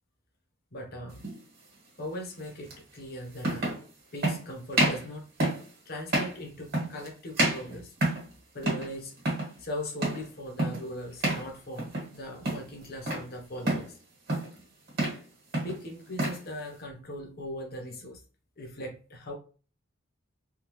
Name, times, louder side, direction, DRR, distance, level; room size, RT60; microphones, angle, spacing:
voice 1, 0.7-1.3 2.0-3.8 4.1-5.3 5.8-7.9 8.5-9.2 9.6-14.0 15.6-18.2 18.6-19.3, left 1 dB, 45° left, 2 dB, 0.9 m, -39 dB
sound 1, 1.2-1.4 2.7-2.8 3.4-3.8 4.2-4.4 4.7-5.1 5.4-5.7 6.1-6.4 6.7-7.1 7.4-8.3 8.6-8.9 9.2-9.5 10.0-10.3 10.6-10.9 11.2-11.5 11.8-12.2 12.4-13.3 13.7-13.9 14.3-14.6 14.9-15.2 15.5-16.4, right 1 dB, 50° right, 1.5 m, -28 dB
3.6 x 2.3 x 3.0 m, 0.37 s
head